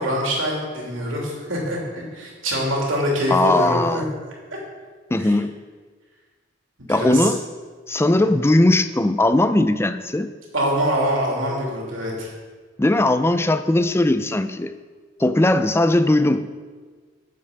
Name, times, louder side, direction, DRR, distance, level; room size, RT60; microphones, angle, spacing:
voice 1, 0.0-4.0 4.5-4.6 5.2-5.3 6.8-7.3 8.2-8.3 10.5-12.3, equal, 85° right, -2 dB, 3.1 m, -24 dB
voice 2, 3.3-4.1 5.1-5.5 6.9-7.4 7.9-10.3 12.8-14.7 15.2-16.5, left 1 dB, 15° left, 11 dB, 0.4 m, -19 dB
9.4 x 7.6 x 6.7 m, 1.5 s
head